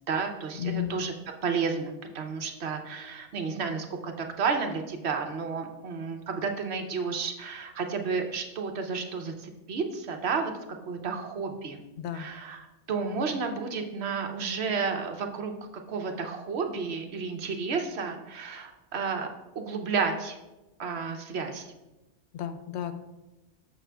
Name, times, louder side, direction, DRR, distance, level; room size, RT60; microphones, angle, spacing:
voice 1, 0.1-1.1 1.4-10.5 10.8-11.8 12.1-15.5 15.9-19.3 19.5-20.4 20.8-21.7, right 5 dB, 65° right, 4 dB, 1.0 m, -31 dB
voice 2, 0.6-0.9 12.0-12.3 22.3-22.9, left 10 dB, 75° left, 9 dB, 0.9 m, -32 dB
6.9 x 6.1 x 3.3 m, 1.0 s
omnidirectional pair, 1.2 m